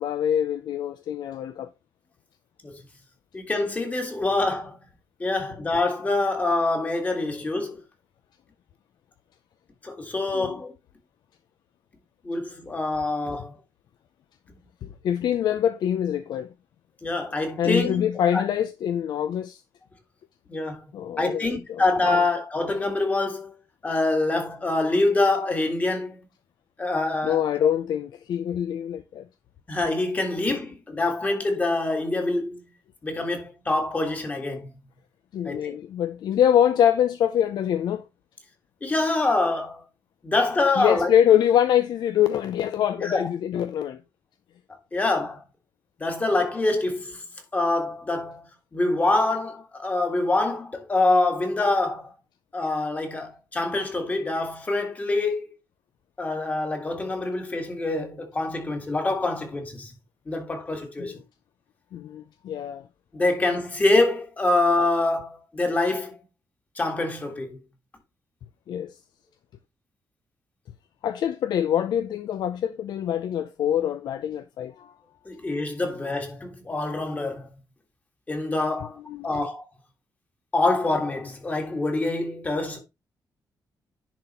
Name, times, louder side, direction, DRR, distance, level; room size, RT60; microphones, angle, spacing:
voice 1, 0.0-1.7 10.3-10.5 14.8-16.5 17.6-19.6 20.9-21.8 22.1-22.2 27.2-29.3 35.3-38.0 40.8-44.0 61.0-61.2 61.9-62.8 68.7-68.9 71.0-74.9 78.8-79.5, left 10 dB, 85° left, 0.6 m, -24 dB
voice 2, 3.3-4.8 5.2-7.8 9.8-10.7 12.2-13.6 17.0-18.0 18.3-18.4 20.5-20.8 21.2-23.5 23.8-26.2 26.8-27.4 29.7-32.6 33.0-34.7 35.4-35.7 38.8-39.8 40.2-41.1 43.0-43.3 44.9-45.4 46.0-47.2 47.5-52.1 52.5-55.5 56.2-59.9 60.3-61.2 63.1-66.2 66.8-67.6 75.3-77.5 78.3-79.0 79.2-79.7 80.5-82.8, left 2 dB, 20° left, 1.9 m, -25 dB
10.5 x 4.2 x 4.3 m
wide cardioid pair, 160°, 7 cm